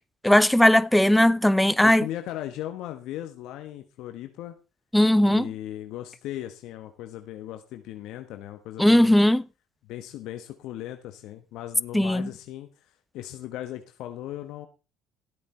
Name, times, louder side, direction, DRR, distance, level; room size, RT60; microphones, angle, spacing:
voice 1, 0.2-2.1 4.9-5.5 8.8-9.4 11.9-12.3, left 1 dB, 5° left, 0.6 m, -18 dB
voice 2, 1.8-4.6 5.2-9.2 9.9-12.7 13.1-14.7, left 13 dB, 70° left, 1.2 m, -37 dB
13.0 x 8.5 x 4.3 m
supercardioid pair, 85°, 0 cm